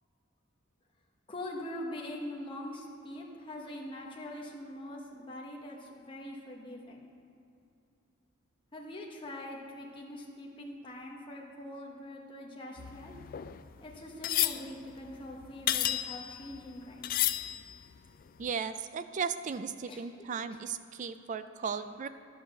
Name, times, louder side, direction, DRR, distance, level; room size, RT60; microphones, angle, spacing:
voice 1, 1.3-7.1 8.7-13.1 13.8-17.1 19.9-20.0, left 1 dB, 25° left, -1 dB, 1.2 m, -43 dB
sound 1, 12.8-16.7 17.0-18.0 18.4-18.5, left 13 dB, 45° left, 0.3 m, -32 dB
voice 2, 18.4-22.1, right 6 dB, 40° right, 12 dB, 0.3 m, -36 dB
11.5 x 5.0 x 6.6 m, 2.5 s
head